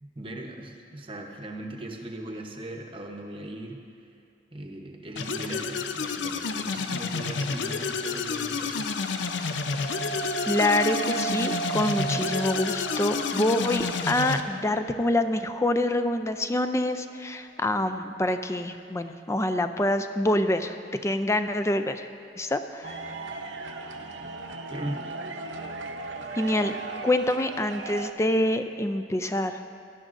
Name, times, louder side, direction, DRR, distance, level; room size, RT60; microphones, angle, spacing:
voice 1, 0.0-3.8 4.5-8.9 24.7-25.0, right 1 dB, 30° right, 2 dB, 0.9 m, -38 dB
sound 1, 5.2-14.4, left 5 dB, 75° left, 0.5 m, -30 dB
sound 2, 9.4-18.5, right 7 dB, 35° left, 0.8 m, -37 dB
voice 2, 10.5-22.1 22.4-23.0 26.4-26.7 27.0-29.6, left 1 dB, 15° left, 9 dB, 0.4 m, -26 dB
sound 3, 22.8-28.1, right 3 dB, 85° right, 0.8 m, -37 dB
17.5 x 12.0 x 2.6 m, 2.4 s
head